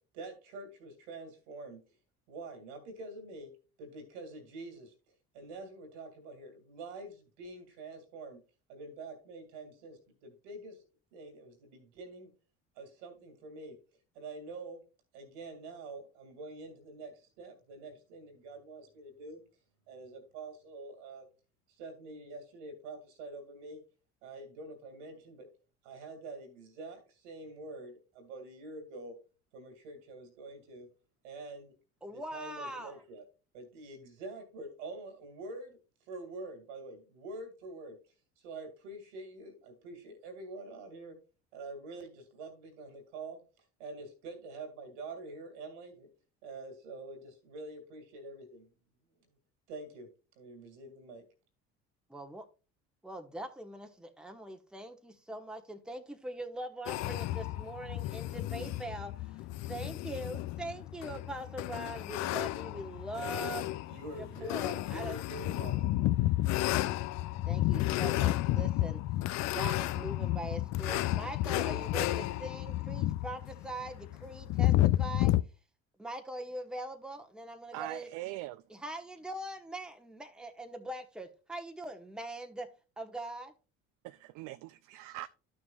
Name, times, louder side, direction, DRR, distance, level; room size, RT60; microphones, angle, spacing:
voice 1, 0.1-1.8 2.3-3.5 3.8-4.9 5.3-8.4 8.7-10.8 11.1-12.3 12.8-13.8 14.1-14.8 15.1-19.4 19.9-21.3 21.8-23.8 24.2-25.5 25.8-29.1 29.5-30.9 31.2-31.7 32.0-33.2 33.5-35.8 36.1-38.0 38.4-41.2 41.5-43.4 43.8-46.1 46.4-48.7 49.7-50.1 50.4-51.2 63.9-66.0, right 2 dB, 80° right, 2.3 m, -46 dB
voice 2, 32.0-33.0 52.1-52.5 53.0-59.1 59.7-63.7 64.1-65.2 67.4-69.0 69.5-75.3 76.0-78.1 78.7-82.7 83.0-83.5, right 1 dB, ahead, 1.1 m, -42 dB
sound 1, 56.9-75.4, left 15 dB, 50° left, 0.4 m, -32 dB
voice 3, 77.7-78.6 84.0-85.3, right 17 dB, 60° right, 0.4 m, -42 dB
12.0 x 6.2 x 2.4 m
hypercardioid pair, 65°, 35 cm